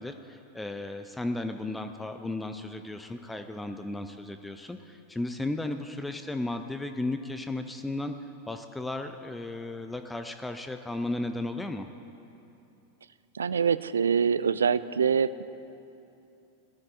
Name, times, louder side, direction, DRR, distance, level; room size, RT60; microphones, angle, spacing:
voice 1, 0.0-8.1 8.5-11.9, left 2 dB, 5° left, 7 dB, 0.5 m, -35 dB
voice 2, 13.3-15.4, right 6 dB, 70° right, 15 dB, 0.3 m, -25 dB
19.5 x 13.0 x 2.6 m, 2.9 s
figure-of-eight pair, 90°, 0 cm